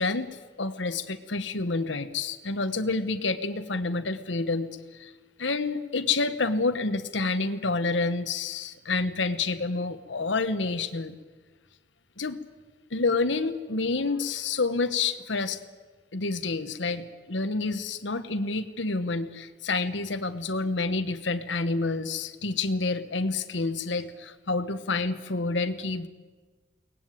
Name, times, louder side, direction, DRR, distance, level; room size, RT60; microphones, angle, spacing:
voice 1, 0.0-5.1 5.4-11.2 12.2-12.4 12.9-15.6 16.1-26.1, left 3 dB, 75° left, 8 dB, 1.2 m, -28 dB
22.5 x 18.5 x 9.2 m, 1.3 s
head